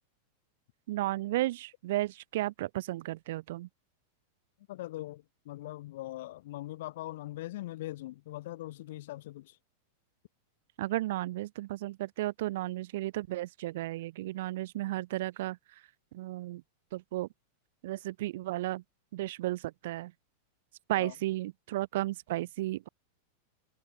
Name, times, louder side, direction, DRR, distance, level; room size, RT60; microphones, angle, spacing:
voice 1, 0.9-3.7 10.8-15.6 16.1-16.6 16.9-17.3 17.8-18.8 19.1-20.1 20.9-22.9, right 16 dB, 55° right, 1.4 m, -34 dB
voice 2, 4.7-9.6 20.9-21.1, left 16 dB, 55° left, 5.8 m, -41 dB
figure-of-eight pair, 90°, 0 cm